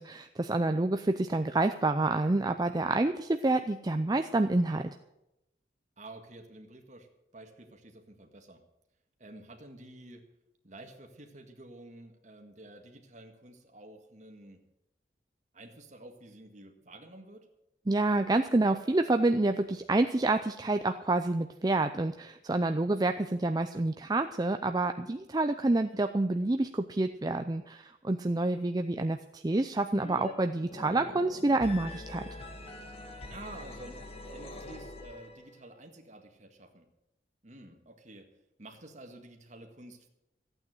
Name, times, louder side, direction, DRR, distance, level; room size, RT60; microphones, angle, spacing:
voice 1, 0.0-4.9 17.9-32.2, right 2 dB, 20° right, 7 dB, 0.5 m, -28 dB
voice 2, 6.0-7.1 7.3-8.6 9.2-10.2 10.6-14.6 15.5-17.5 33.3-36.9 37.4-38.3 38.6-40.1, right 2 dB, 40° right, 4 dB, 1.9 m, -50 dB
sound 1, 29.9-30.3 30.6-35.5, left 2 dB, 35° left, 1.7 m, -44 dB
14.5 x 8.9 x 7.8 m, 0.88 s
head